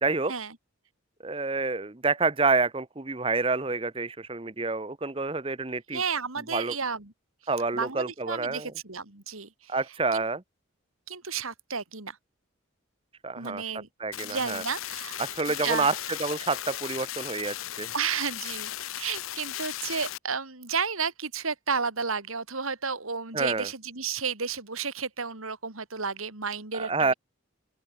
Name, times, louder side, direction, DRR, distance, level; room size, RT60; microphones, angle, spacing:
voice 1, 0.0-0.3 1.2-6.0 6.5-6.7 7.5-8.7 9.7-10.4 13.2-13.6 14.0-14.6 15.2-17.9 23.3-23.7 26.7-27.1, right 3 dB, 25° right, 0.9 m, -28 dB
voice 2, 5.9-7.1 7.7-9.8 10.1-10.2 11.1-12.2 13.4-13.9 14.2-15.2 15.5-15.9 17.9-18.7 19.0-27.1, right 5 dB, 85° right, 3.4 m, -32 dB
sound 1, 14.1-20.2, left 12 dB, 85° left, 0.9 m, -37 dB
open air
head